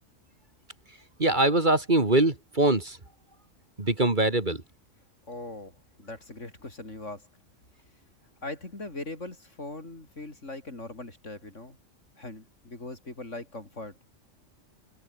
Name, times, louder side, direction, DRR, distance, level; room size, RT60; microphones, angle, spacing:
voice 1, 1.2-3.0 3.8-4.6, right 2 dB, 35° right, 2.8 m, -23 dB
voice 2, 5.3-7.3 8.4-11.8 12.2-14.0, left 2 dB, 65° left, 5.1 m, -40 dB
omnidirectional pair, 1.4 m